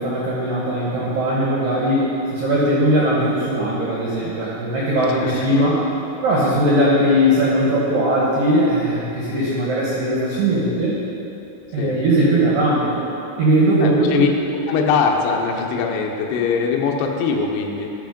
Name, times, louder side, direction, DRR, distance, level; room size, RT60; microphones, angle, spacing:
voice 1, 0.0-5.8 6.2-11.0 11.7-13.1 13.4-14.3, right 1 dB, 85° right, -6 dB, 1.9 m, -19 dB
voice 2, 5.1-5.6 11.8-11.9 13.8-14.3 14.7-17.9, left 5 dB, 85° left, 1 dB, 2.4 m, -22 dB
12.0 x 6.0 x 5.1 m, 3.0 s
omnidirectional pair, 5.9 m